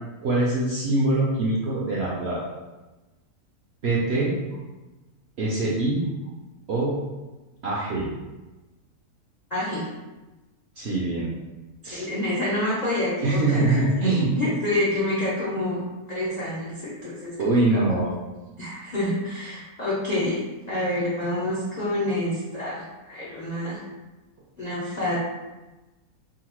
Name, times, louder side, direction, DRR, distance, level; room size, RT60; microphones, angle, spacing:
voice 1, 0.2-2.4 3.8-4.3 5.4-6.0 6.7-6.9 7.6-8.1 10.8-11.3 11.8-12.1 13.2-14.3 17.4-18.1, right 2 dB, 65° right, -5 dB, 0.6 m, -23 dB
voice 2, 9.5-9.9 11.8-13.6 14.0-15.8 16.1-17.6 18.6-20.4 20.7-23.8 24.6-25.2, left 1 dB, 75° left, -8 dB, 0.4 m, -27 dB
3.7 x 2.1 x 3.0 m, 1.1 s
omnidirectional pair, 1.6 m